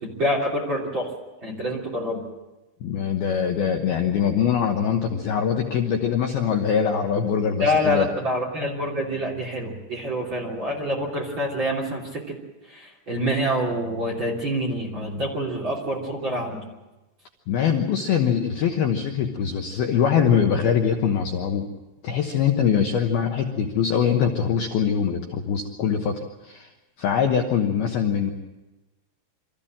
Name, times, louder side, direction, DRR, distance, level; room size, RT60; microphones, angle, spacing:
voice 1, 0.0-1.1 1.4-2.2 7.6-12.0 12.7-16.6, equal, 30° right, -1 dB, 3.0 m, -26 dB
voice 2, 2.8-8.1 17.5-21.7 22.0-26.7 27.0-28.3, left 7 dB, 70° left, 2 dB, 2.4 m, -23 dB
25.5 x 14.5 x 8.8 m, 1.1 s
omnidirectional pair, 5.9 m